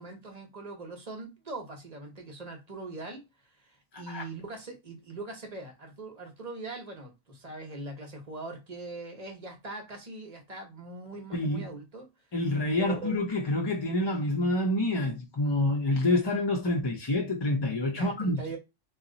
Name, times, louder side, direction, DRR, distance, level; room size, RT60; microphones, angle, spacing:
voice 1, 0.0-12.1 12.8-13.3 18.0-18.6, right 2 dB, 35° right, 1.0 m, -41 dB
voice 2, 11.3-11.7 12.3-18.6, left 1 dB, 30° left, 0.6 m, -27 dB
2.9 x 2.4 x 3.9 m
omnidirectional pair, 1.2 m